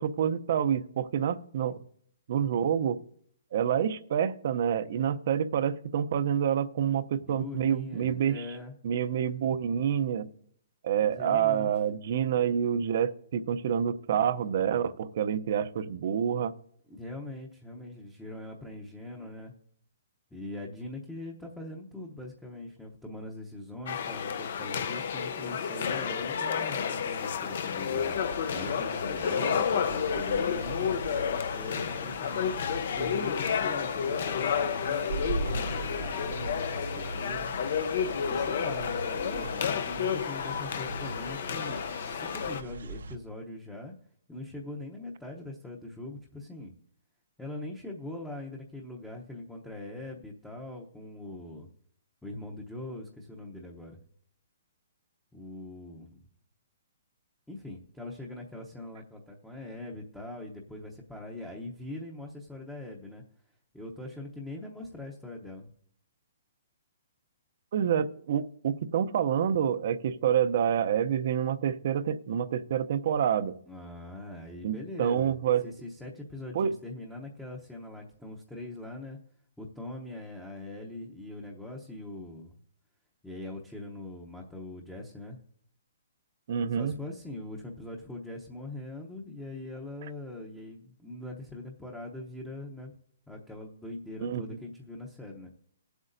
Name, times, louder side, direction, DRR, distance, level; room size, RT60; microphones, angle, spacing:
voice 1, 0.0-1.8 2.3-3.0 3.5-8.4 8.8-10.3 10.8-16.5 29.4-29.7 67.7-73.6 74.6-75.7 76.5-76.7 86.5-86.9 94.2-94.4, right 8 dB, 50° right, 13 dB, 0.6 m, -27 dB
voice 2, 7.1-8.7 11.0-11.7 16.9-19.5 20.3-32.5 32.9-37.5 38.3-43.9 44.3-46.7 47.4-51.7 52.2-54.0 55.3-56.2 57.5-63.2 63.7-65.7 73.7-75.3 75.6-79.2 79.6-82.6 83.2-85.4 86.7-92.9 93.3-95.5, left 1 dB, 5° left, -1 dB, 0.7 m, -42 dB
sound 1, 23.9-42.6, left 7 dB, 60° left, 0.6 m, -31 dB
sound 2, 27.9-43.2, right 3 dB, 85° right, 0.9 m, -41 dB
20.0 x 8.0 x 2.6 m, 0.65 s
hypercardioid pair, 160°, 0 cm